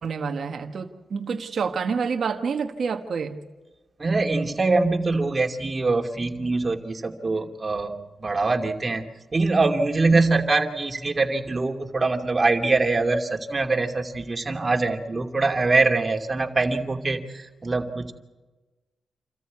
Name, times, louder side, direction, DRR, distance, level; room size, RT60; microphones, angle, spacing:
voice 1, 0.0-3.4 10.1-10.3, right 5 dB, 65° right, 5 dB, 1.4 m, -28 dB
voice 2, 4.0-18.1, right 3 dB, 40° right, 4 dB, 2.7 m, -23 dB
28.0 x 14.0 x 8.4 m, 1.2 s
supercardioid pair, 45°, 0 cm